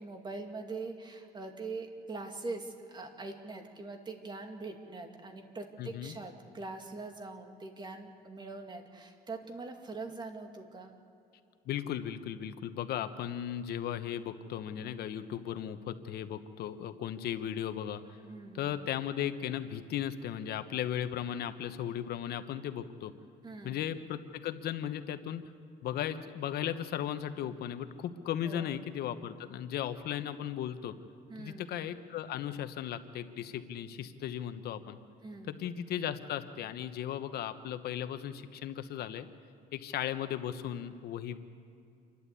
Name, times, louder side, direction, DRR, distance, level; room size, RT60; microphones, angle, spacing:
voice 1, 0.0-10.9 18.2-18.8 23.4-23.8 28.4-28.7 31.3-31.7 35.2-35.5, right 3 dB, 25° right, 4 dB, 2.4 m, -43 dB
voice 2, 5.8-6.2 11.6-18.2 18.5-23.1 23.6-25.4 25.8-30.9 31.4-35.0 35.5-39.3 39.7-41.4, left 10 dB, 70° left, 10 dB, 1.2 m, -36 dB
28.0 x 12.0 x 8.4 m, 2.5 s
cardioid pair, 110°, 17 cm